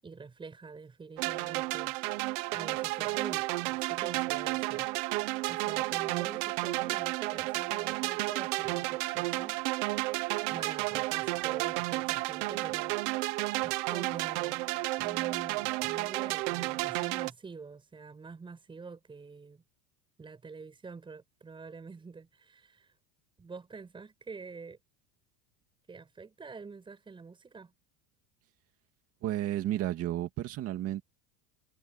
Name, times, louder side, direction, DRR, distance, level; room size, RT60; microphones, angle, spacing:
voice 1, 0.0-2.0 2.5-4.9 5.5-9.6 10.5-14.7 15.0-19.6 20.2-23.0 23.4-24.8 25.9-27.7, right 4 dB, 10° right, 7.8 m, -47 dB
sound 1, 1.2-17.3, right 22 dB, 55° right, 1.0 m, -32 dB
voice 2, 29.2-31.0, right 13 dB, 35° right, 2.3 m, -32 dB
cardioid pair, 180°, 42 cm